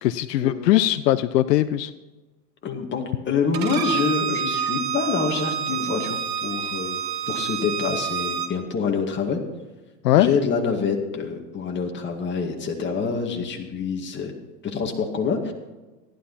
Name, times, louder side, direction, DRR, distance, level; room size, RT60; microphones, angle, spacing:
voice 1, 0.0-1.9 10.0-10.3, left 14 dB, 75° left, 14 dB, 0.7 m, -20 dB
voice 2, 2.6-7.0 7.3-9.4 10.1-14.3 14.6-15.5, left 5 dB, 25° left, 2 dB, 2.0 m, -26 dB
Bowed string instrument, 3.5-8.5, right 7 dB, 85° right, 1.7 m, -28 dB
15.0 x 11.5 x 4.2 m, 1.2 s
hypercardioid pair, 130°, 48 cm